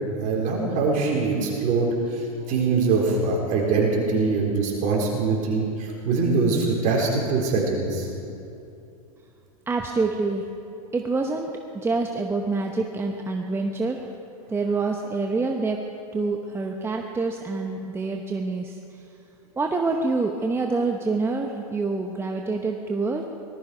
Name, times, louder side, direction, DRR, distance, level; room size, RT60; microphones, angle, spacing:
voice 1, 0.2-2.2 2.5-8.1, right 4 dB, 45° right, -1 dB, 4.0 m, -23 dB
voice 2, 9.7-10.4 10.9-14.0 14.5-15.8 16.1-18.8 19.6-23.3, right 3 dB, 15° right, 3 dB, 0.9 m, -26 dB
19.0 x 13.0 x 5.0 m, 2.7 s
hypercardioid pair, 110°, 19 cm